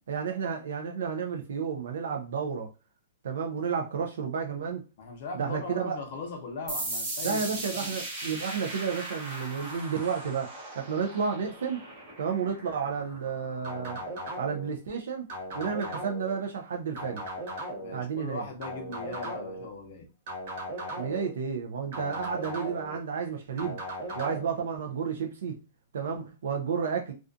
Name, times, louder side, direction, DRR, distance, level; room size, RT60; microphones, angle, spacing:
voice 1, 0.1-2.7 3.2-4.8 5.3-6.0 7.2-11.8 12.2-14.0 14.4-15.3 15.5-17.3 17.9-18.5 21.0-23.8 24.2-25.6 25.9-27.1, right 6 dB, 75° right, 0.4 m, -31 dB
voice 2, 5.0-7.9 17.8-20.1, left 3 dB, 45° left, 0.6 m, -39 dB
sound 1, 6.7-14.1, right 2 dB, 20° right, 0.8 m, -38 dB
sound 2, 13.6-14.7 15.3-16.3 17.0-18.0 18.6-19.7 20.3-21.3 21.9-23.0 23.6-24.4, equal, 45° right, 1.1 m, -37 dB
2.4 x 2.3 x 2.4 m
hypercardioid pair, 170°, 0 cm